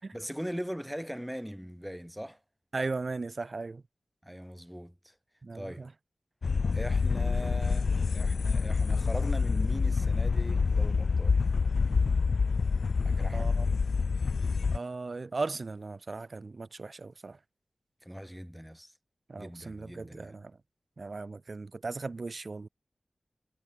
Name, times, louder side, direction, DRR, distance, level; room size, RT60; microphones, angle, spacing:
voice 1, 0.1-2.4 4.2-5.1 5.5-5.9 6.7-11.4 13.0-13.7 18.0-18.9 19.4-20.4, equal, 5° right, 7.5 m, -40 dB
voice 2, 2.7-3.8 5.4-5.9 13.3-13.6 14.7-17.4 19.3-20.5 21.0-22.7, right 3 dB, 60° right, 3.0 m, -37 dB
sound 1, 6.4-14.8, left 4 dB, 80° left, 1.3 m, -27 dB
cardioid pair, 45°, 0 cm